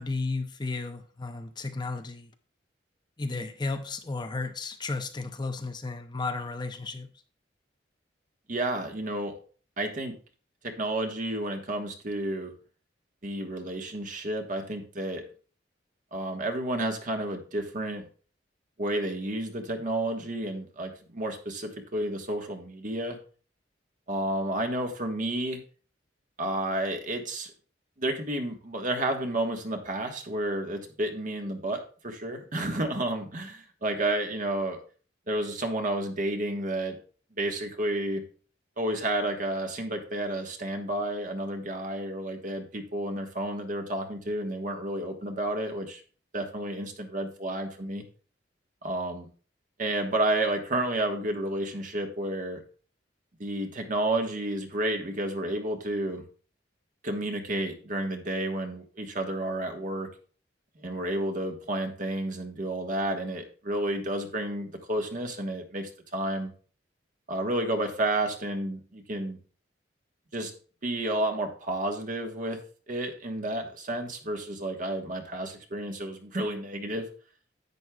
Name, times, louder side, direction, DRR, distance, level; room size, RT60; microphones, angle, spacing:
voice 1, 0.0-2.3 3.2-7.1, left 3 dB, 25° left, 0.5 m, -33 dB
voice 2, 8.5-9.3 9.8-10.1 10.6-12.5 13.2-15.2 16.1-18.0 18.8-23.2 24.1-25.6 26.4-27.5 28.0-34.8 35.3-37.0 37.4-38.2 38.8-46.0 46.3-48.0 48.8-49.3 49.8-52.6 53.4-56.2 57.0-60.1 60.8-66.5 67.3-69.4 70.3-70.5 70.8-72.6 72.9-77.1, right 1 dB, 45° right, 1.3 m, -31 dB
10.5 x 8.3 x 2.3 m
head